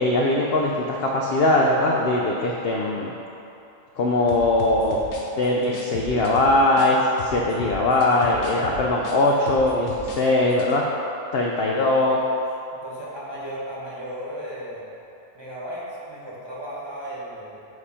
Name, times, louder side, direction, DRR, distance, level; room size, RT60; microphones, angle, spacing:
voice 1, 0.0-3.1 4.0-5.0 5.4-10.9 11.3-12.2, left 2 dB, 65° left, -2 dB, 0.6 m, -21 dB
sound 1, 4.3-6.9 7.2-10.2 10.5-10.7, left 4 dB, 80° left, 1.3 m, -36 dB
voice 2, 12.8-15.0 15.3-17.7, equal, 20° right, -7 dB, 1.0 m, -35 dB
5.0 x 5.0 x 5.6 m, 2.9 s
omnidirectional pair, 1.5 m